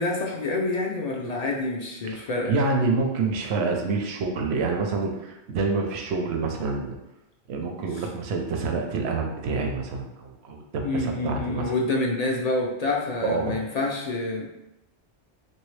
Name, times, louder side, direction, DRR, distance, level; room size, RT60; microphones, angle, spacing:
voice 1, 0.0-2.5 7.9-8.0 10.8-14.5, left 2 dB, 55° left, -1 dB, 0.4 m, -27 dB
voice 2, 2.5-6.9 7.5-11.6 13.2-13.6, right 3 dB, 75° right, 2 dB, 0.8 m, -27 dB
3.1 x 2.7 x 3.2 m, 0.91 s
omnidirectional pair, 1.1 m